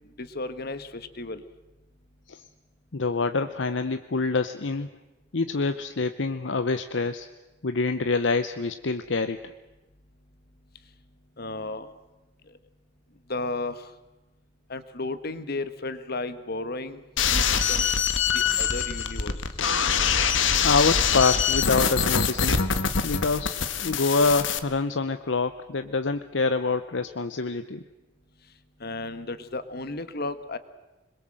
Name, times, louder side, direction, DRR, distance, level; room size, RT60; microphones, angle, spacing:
voice 1, 0.2-1.4 11.4-11.9 13.3-13.8 14.7-17.0 17.3-17.9 18.3-19.4 28.8-30.6, left 2 dB, 55° left, 12 dB, 1.5 m, -34 dB
voice 2, 2.9-4.9 5.3-7.3 7.6-9.5 20.6-22.6 23.0-27.8, left 3 dB, 70° left, 10 dB, 0.8 m, -26 dB
sound 1, 17.2-24.6, left 6 dB, 85° left, 1.4 m, -24 dB
26.0 x 21.5 x 7.7 m, 1.1 s
head